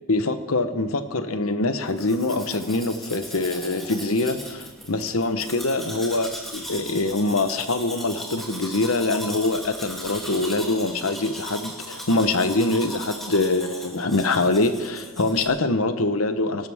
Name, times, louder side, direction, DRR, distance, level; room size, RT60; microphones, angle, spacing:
voice 1, 0.1-16.7, left 2 dB, 70° left, 9 dB, 1.1 m, -24 dB
Domestic sounds home sounds, 1.9-15.5, equal, ahead, 2.8 m, -38 dB
24.0 x 12.5 x 3.6 m, 1.1 s
head